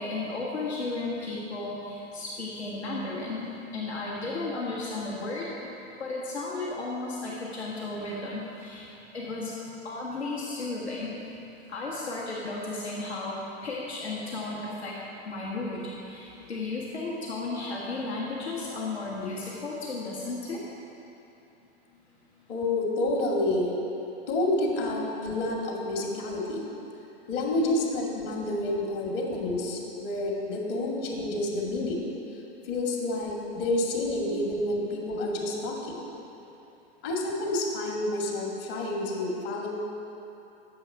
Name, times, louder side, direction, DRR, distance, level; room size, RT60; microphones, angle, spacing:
voice 1, 0.0-5.5 6.0-8.9 9.1-9.5 9.8-11.1 11.7-15.0 15.2-20.6, left 3 dB, 90° left, -5 dB, 1.6 m, -34 dB
voice 2, 22.5-23.8 24.3-26.6 27.3-32.1 32.6-36.0 37.0-39.7, left 1 dB, 60° left, -1 dB, 2.2 m, -29 dB
9.6 x 7.1 x 5.2 m, 3.0 s
hypercardioid pair, 95°, 32 cm